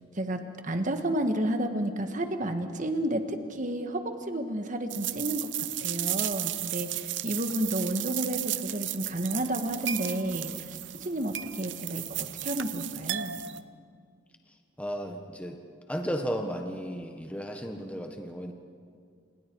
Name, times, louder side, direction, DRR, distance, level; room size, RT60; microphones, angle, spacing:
voice 1, 0.2-5.5 5.8-13.4, right 1 dB, 40° right, 6 dB, 1.8 m, -31 dB
sound 1, 4.9-13.6, right 14 dB, 70° right, 0.8 m, -34 dB
voice 2, 14.8-15.6 15.9-18.5, equal, 5° left, 4 dB, 1.3 m, -34 dB
29.0 x 28.0 x 4.8 m, 2.2 s
head